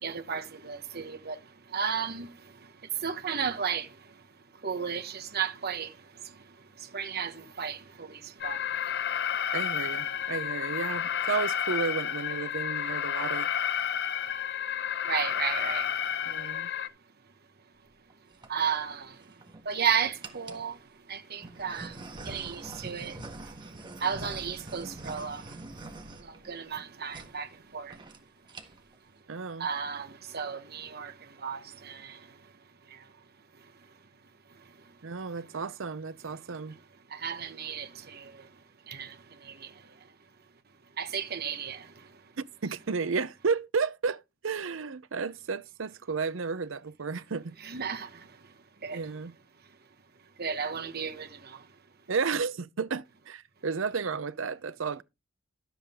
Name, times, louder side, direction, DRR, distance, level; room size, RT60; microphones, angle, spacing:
voice 1, 0.0-1.4 1.7-2.3 3.0-3.9 4.6-5.9 6.9-8.6 15.1-15.9 18.5-19.2 19.6-20.8 21.1-22.0 22.2-23.2 24.0-25.5 26.2-27.5 27.7-27.9 29.6-31.1 31.4-32.2 37.1-38.3 38.9-39.2 39.4-39.7 41.0-41.9 47.7-48.2 48.8-49.0 50.4-51.6, right 7 dB, 55° right, 1.2 m, -33 dB
Alarm, 8.4-16.9, left 9 dB, 60° left, 0.8 m, -31 dB
voice 2, 9.5-13.5 16.3-16.7 29.3-29.7 35.0-36.8 42.6-47.6 48.9-49.3 52.1-55.0, right 5 dB, 75° right, 0.7 m, -32 dB
sound 1, 18.1-18.5 19.2-19.7 20.2-20.7 21.4-26.8 27.1-27.3 27.6-27.7 27.9-28.2 28.5-28.9, right 2 dB, 25° right, 1.5 m, -44 dB
12.5 x 7.3 x 3.6 m
head